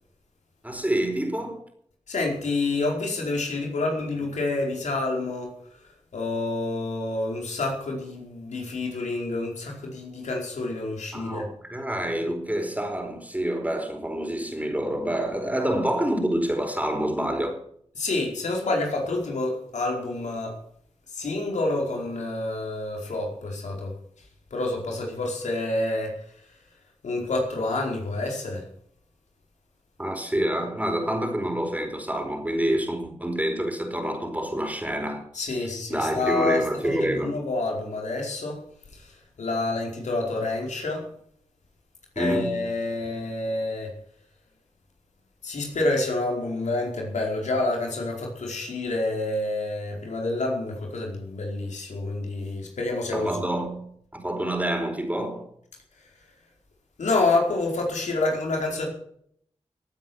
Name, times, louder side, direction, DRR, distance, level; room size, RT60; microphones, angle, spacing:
voice 1, 0.6-1.6 11.1-17.6 30.0-35.3 35.9-37.4 42.2-42.6 53.1-53.8 54.1-55.5, right 1 dB, 10° right, 4.7 m, -27 dB
voice 2, 2.1-5.5 6.1-11.4 18.0-20.6 21.1-23.9 24.5-26.1 27.0-28.6 35.3-38.6 38.9-41.1 42.1-43.9 45.4-53.3 57.0-58.9, left 2 dB, 85° left, 4.8 m, -28 dB
17.5 x 9.1 x 7.2 m
cardioid pair, 55°, 12 cm